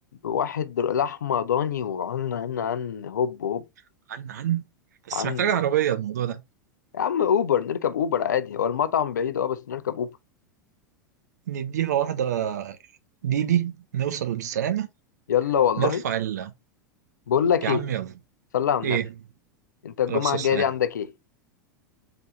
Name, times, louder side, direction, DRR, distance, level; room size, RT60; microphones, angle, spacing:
voice 1, 0.2-3.6 5.1-5.5 6.9-10.1 15.3-16.0 17.3-17.8 18.5-19.0 19.8-21.1, left 8 dB, 65° left, 0.4 m, -25 dB
voice 2, 4.1-4.6 5.1-6.4 11.5-12.8 13.2-14.9 15.8-16.5 17.6-18.1 18.8-19.1 20.1-20.7, right 10 dB, 60° right, 0.6 m, -26 dB
3.9 x 3.3 x 3.1 m
figure-of-eight pair, 85°, 10 cm